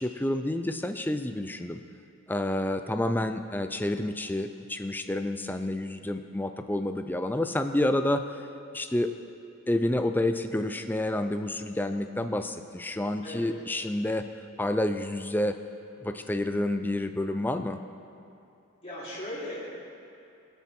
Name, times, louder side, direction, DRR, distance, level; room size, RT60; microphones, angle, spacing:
voice 1, 0.0-1.8 2.3-8.5 8.7-9.1 9.7-14.3 14.6-15.6 16.0-17.8, left 1 dB, 10° left, 8 dB, 0.4 m, -29 dB
voice 2, 18.8-19.8, left 1 dB, 30° left, -10 dB, 3.3 m, -37 dB
19.0 x 7.0 x 4.4 m, 2.7 s
head